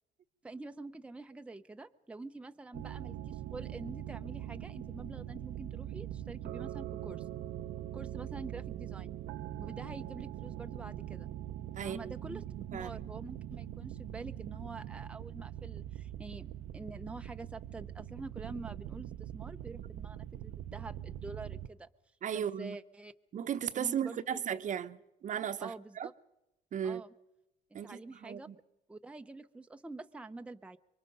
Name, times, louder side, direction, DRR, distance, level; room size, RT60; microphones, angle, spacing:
voice 1, 0.4-7.3 7.9-9.1 9.6-11.3 11.8-12.4 12.7-16.5 16.7-21.9 22.3-23.1 23.7-24.4 25.6-26.1 26.8-27.1 27.7-28.5 28.9-30.8, right 3 dB, 5° right, 0.7 m, -46 dB
sound 1, 2.7-21.7, right 12 dB, 80° right, 0.8 m, -42 dB
voice 2, 11.8-12.4 12.7-12.9 22.2-22.8 23.3-26.1 26.7-27.0 27.7-28.5, right 8 dB, 50° right, 0.9 m, -36 dB
25.5 x 23.0 x 5.4 m
cardioid pair, 110°, 17 cm